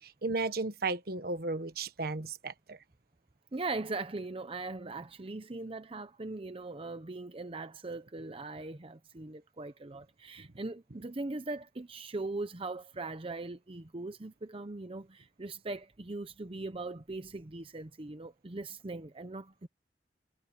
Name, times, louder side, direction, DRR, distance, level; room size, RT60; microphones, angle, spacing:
voice 1, 0.0-2.8 10.4-10.5, right 3 dB, 60° right, 1.3 m, -34 dB
voice 2, 3.5-19.7, right 3 dB, 35° right, 0.8 m, -40 dB
head